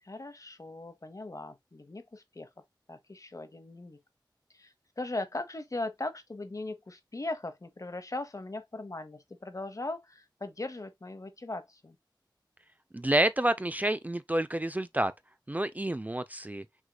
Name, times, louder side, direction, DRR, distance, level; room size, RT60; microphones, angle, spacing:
voice 1, 0.0-2.5 2.9-4.0 4.5-12.0, left 2 dB, 45° left, 1.0 m, -39 dB
voice 2, 12.9-15.1 15.5-16.6, right 1 dB, 20° right, 0.4 m, -29 dB
6.3 x 3.7 x 2.3 m
wide cardioid pair, 60°, 8 cm